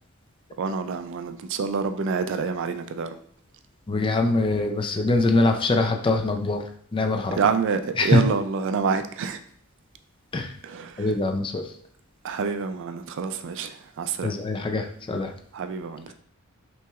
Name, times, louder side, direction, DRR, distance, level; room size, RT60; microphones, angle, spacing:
voice 1, 0.6-3.2 7.4-9.4 10.6-11.1 12.2-14.3 15.5-16.1, right 5 dB, 60° right, 0.3 m, -27 dB
voice 2, 3.9-6.6 6.9-7.4 8.0-8.2 10.3-10.6 11.0-11.7 14.2-15.3, left 2 dB, 25° left, 0.4 m, -23 dB
5.6 x 3.0 x 2.4 m
head